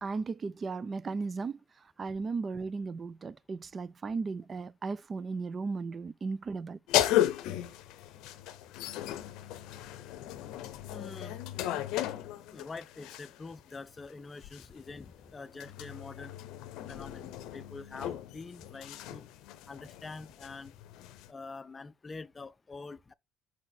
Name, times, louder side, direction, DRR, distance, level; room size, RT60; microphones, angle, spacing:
voice 1, 0.0-1.6 2.0-6.8, right 4 dB, 35° right, 0.4 m, -36 dB
sound 1, 6.9-13.5 14.4-21.3, left 13 dB, 80° left, 0.6 m, -35 dB
voice 2, 10.8-11.4 12.5-16.4 16.9-19.3 19.7-20.7 21.3-23.1, left 3 dB, 25° left, 0.5 m, -45 dB
4.8 x 4.1 x 5.8 m
supercardioid pair, 95°, 0 cm